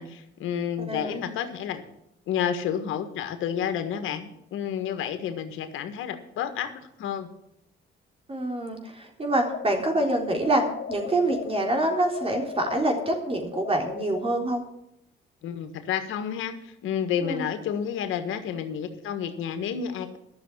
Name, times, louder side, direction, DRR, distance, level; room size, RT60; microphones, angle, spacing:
voice 1, 0.0-1.8 2.3-7.3 15.4-20.2, left 8 dB, 85° left, 8 dB, 1.6 m, -30 dB
voice 2, 0.8-1.2 8.3-14.6 17.2-17.4, right 2 dB, 30° right, 3 dB, 3.7 m, -26 dB
sound 1, 9.4-14.3, left 7 dB, 55° left, 1.7 m, -36 dB
12.5 x 6.9 x 9.1 m, 0.80 s
cardioid pair, 90°, 20 cm